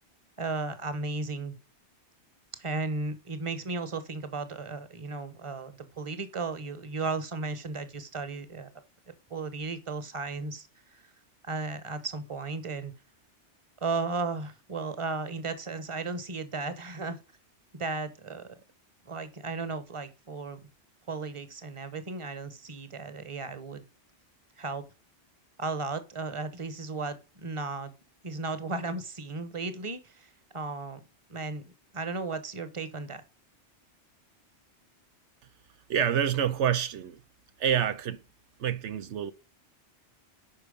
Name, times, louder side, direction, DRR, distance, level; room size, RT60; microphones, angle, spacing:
voice 1, 0.4-1.5 2.6-8.7 9.3-11.0 11.4-12.9 13.8-17.2 17.8-18.6 19.0-20.6 21.1-23.8 24.6-24.8 25.6-27.9 28.2-31.0 31.3-31.6 31.9-33.2, right 3 dB, 30° right, 1.1 m, -35 dB
voice 2, 35.9-37.2 37.6-38.2 38.6-39.3, right 9 dB, 80° right, 1.0 m, -27 dB
8.8 x 5.7 x 5.2 m
omnidirectional pair, 1.2 m